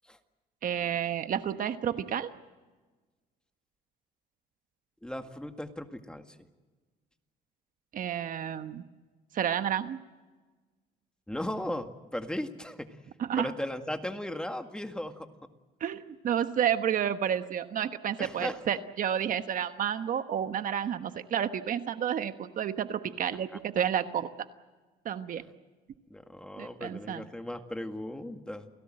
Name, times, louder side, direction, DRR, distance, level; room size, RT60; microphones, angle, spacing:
voice 1, 0.6-2.3 7.9-8.8 9.3-10.0 13.2-13.5 15.8-24.3 25.0-25.4 26.6-27.2, right 9 dB, 55° right, 10 dB, 1.2 m, -30 dB
voice 2, 5.0-6.4 11.3-13.0 13.4-15.3 18.2-18.8 25.4-25.5 26.1-28.7, left 1 dB, 5° left, 6 dB, 1.9 m, -37 dB
29.5 x 18.0 x 7.7 m, 1.3 s
cardioid pair, 110°, 17 cm